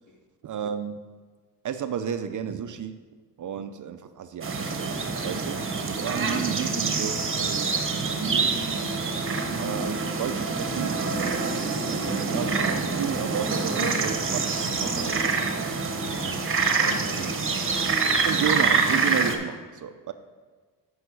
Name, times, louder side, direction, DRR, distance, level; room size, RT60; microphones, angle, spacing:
voice 1, 0.4-1.0 1.6-3.0 3.4-4.9 5.2-7.8 8.1-8.6 9.5-11.4 11.9-15.5 18.2-20.1, right 8 dB, 45° right, 9 dB, 0.5 m, -33 dB
sound 1, 4.4-19.4, right 4 dB, 30° right, 1.1 m, -26 dB
voice 2, 16.0-16.4 16.8-17.7, equal, 45° left, 0 dB, 2.0 m, -39 dB
8.0 x 5.5 x 4.6 m, 1.5 s
cardioid pair, 75°, 42 cm